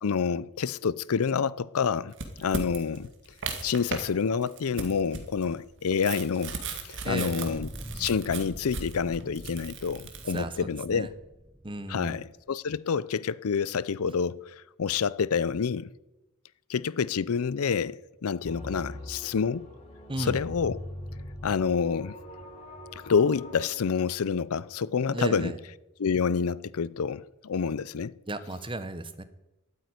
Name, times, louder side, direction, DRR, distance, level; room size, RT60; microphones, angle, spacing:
voice 1, 0.0-2.1 2.4-3.1 3.6-6.6 6.9-7.7 8.0-11.1 11.9-15.9 16.7-19.7 20.2-20.8 21.4-22.2 23.0-25.5 26.0-28.1, left 6 dB, 70° left, 0.5 m, -28 dB
sound 1, 2.1-4.1 4.4-10.4, right 4 dB, 55° right, 2.0 m, -37 dB
voice 2, 7.0-7.5 10.3-11.1 11.6-12.2 20.1-20.4 25.1-25.6 28.3-29.2, right 2 dB, 25° right, 0.9 m, -35 dB
sound 2, 7.5-12.4, equal, 5° right, 0.5 m, -44 dB
sound 3, 18.4-23.7, equal, 30° left, 4.6 m, -42 dB
12.5 x 9.2 x 9.6 m
head